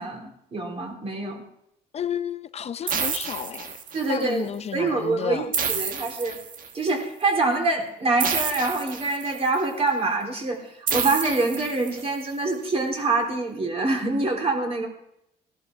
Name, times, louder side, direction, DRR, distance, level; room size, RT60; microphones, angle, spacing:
voice 1, 0.0-1.4 3.9-6.4 6.7-14.9, right 3 dB, 35° right, 3.8 m, -25 dB
voice 2, 1.9-3.8 4.1-5.5, left 8 dB, 40° left, 0.6 m, -31 dB
sound 1, 2.9-4.2 5.5-6.9 8.2-9.6 10.9-12.2, right 6 dB, 55° right, 1.6 m, -29 dB
18.0 x 11.5 x 3.6 m
cardioid pair, 110°, 17 cm